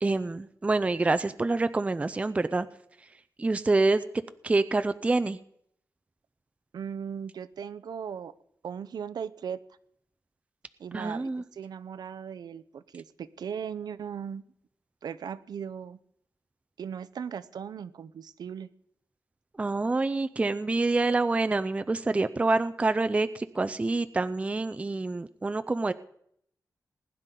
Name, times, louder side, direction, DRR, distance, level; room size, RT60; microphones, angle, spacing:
voice 1, 0.0-2.7 3.4-4.0 4.4-5.4 10.9-11.4 19.6-25.9, right 3 dB, 20° right, 11 dB, 0.4 m, -26 dB
voice 2, 6.7-8.3 8.6-9.6 10.8-14.4 15.0-16.0 16.8-18.7, right 7 dB, 90° right, 14 dB, 0.6 m, -38 dB
19.5 x 10.5 x 3.8 m, 0.71 s
wide cardioid pair, 140°, 7 cm